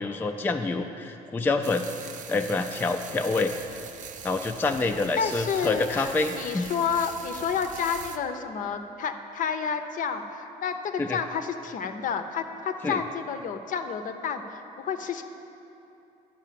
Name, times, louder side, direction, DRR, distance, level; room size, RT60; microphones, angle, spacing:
voice 1, 0.0-1.9 2.3-3.5 4.2-6.7 11.0-11.2 12.8-13.0, left 3 dB, 10° left, 5 dB, 0.3 m, -27 dB
sound 1, 1.6-8.2, right 7 dB, 50° right, 0.6 m, -42 dB
voice 2, 5.2-15.2, left 6 dB, 50° left, 8 dB, 0.6 m, -30 dB
9.9 x 4.8 x 7.5 m, 2.9 s
cardioid pair, 110°, 17 cm